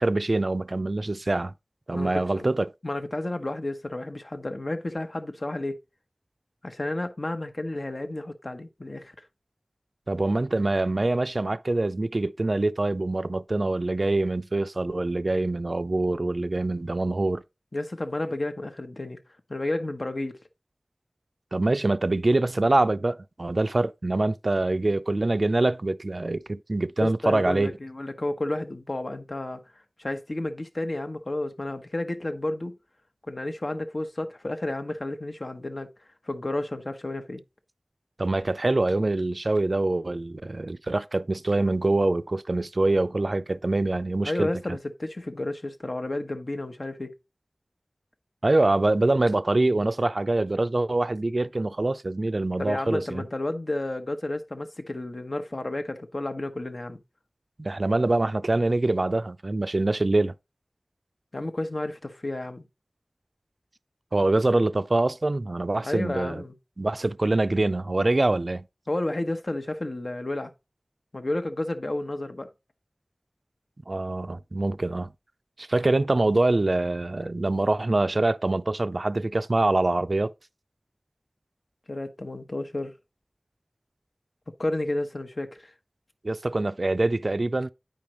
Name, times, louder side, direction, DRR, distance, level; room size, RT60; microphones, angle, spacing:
voice 1, 0.0-1.5 1.9-2.7 10.1-17.4 21.5-27.7 38.2-44.5 48.4-53.2 57.6-60.3 64.1-66.4 66.8-68.7 73.9-75.1 75.6-80.3 86.2-87.7, right 2 dB, 65° right, 0.3 m, -24 dB
voice 2, 1.9-2.5 2.8-5.8 6.6-9.1 17.7-19.2 19.5-20.4 27.0-32.8 33.3-35.9 36.2-37.4 44.2-47.2 52.6-57.0 61.3-62.7 65.8-66.5 68.9-70.5 71.1-72.5 81.9-82.9 84.6-85.7, left 1 dB, 60° left, 0.9 m, -31 dB
8.9 x 5.1 x 3.0 m
wide cardioid pair, 45°, 0 cm